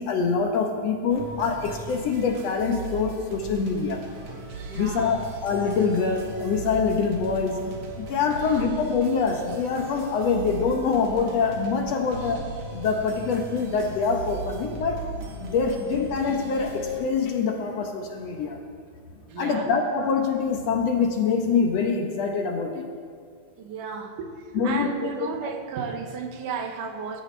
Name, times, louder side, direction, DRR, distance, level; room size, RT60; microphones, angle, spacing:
voice 1, 0.0-4.1 4.8-7.7 8.0-12.4 12.7-15.1 15.4-18.6 19.4-22.9 24.5-25.5, left 5 dB, 65° left, 3 dB, 2.0 m, -25 dB
sound 1, 1.1-17.0, right 3 dB, 65° right, 2.9 m, -38 dB
voice 2, 4.7-5.2 8.4-8.7 15.5-15.6 19.3-19.7 23.6-27.2, right 5 dB, 85° right, 5 dB, 2.7 m, -34 dB
22.5 x 13.0 x 3.3 m, 2.1 s
omnidirectional pair, 3.6 m